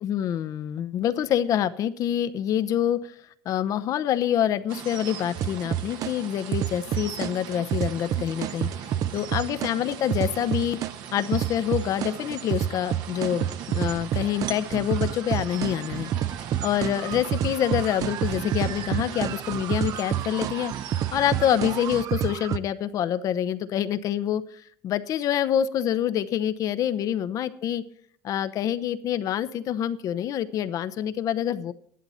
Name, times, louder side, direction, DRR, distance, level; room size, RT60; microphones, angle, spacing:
voice 1, 0.0-3.1 3.4-8.7 9.1-10.8 11.1-16.1 16.6-20.7 21.1-27.8 28.2-31.7, left 10 dB, 55° left, 14 dB, 0.8 m, -26 dB
sound 1, 4.7-22.0, right 8 dB, 70° right, 1.4 m, -39 dB
sound 2, 5.4-6.1 6.5-10.9 11.3-22.6, right 11 dB, 50° right, 0.5 m, -29 dB
13.0 x 11.0 x 4.3 m, 0.64 s
cardioid pair, 115°, 7 cm